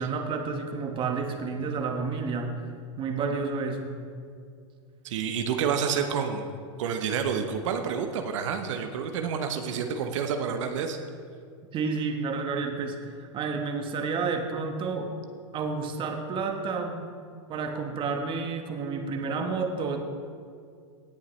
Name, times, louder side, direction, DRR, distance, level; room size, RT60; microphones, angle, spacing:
voice 1, 0.0-2.5 3.0-3.9 11.7-15.1 15.5-17.0 17.5-20.0, right 4 dB, 30° right, 4 dB, 1.2 m, -30 dB
voice 2, 5.0-6.5 6.8-11.0, right 7 dB, 70° right, 6 dB, 0.9 m, -29 dB
17.5 x 7.3 x 3.2 m, 2.2 s
hypercardioid pair, 120°, 16 cm